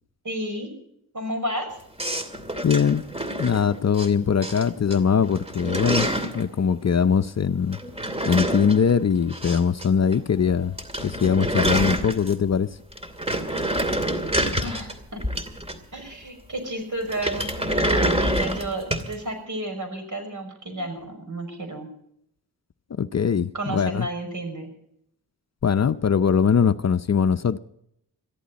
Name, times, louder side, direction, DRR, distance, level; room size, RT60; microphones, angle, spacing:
voice 1, 0.2-0.7 1.1-1.8 14.6-15.2 15.9-21.9 23.5-24.7, right 1 dB, 50° right, 6.0 m, -32 dB
sound 1, 2.0-4.1 4.4-5.0 5.2-6.4 7.7-9.9 10.1-10.2 10.5-10.6 10.8-12.5 12.9-16.0 17.1-19.1, right 1 dB, 15° right, 2.5 m, -27 dB
voice 2, 2.6-3.0 3.4-7.8 8.2-12.7 22.9-24.1 25.6-27.6, left 7 dB, 45° left, 0.6 m, -21 dB
22.5 x 14.0 x 4.1 m
cardioid pair, 75°, 38 cm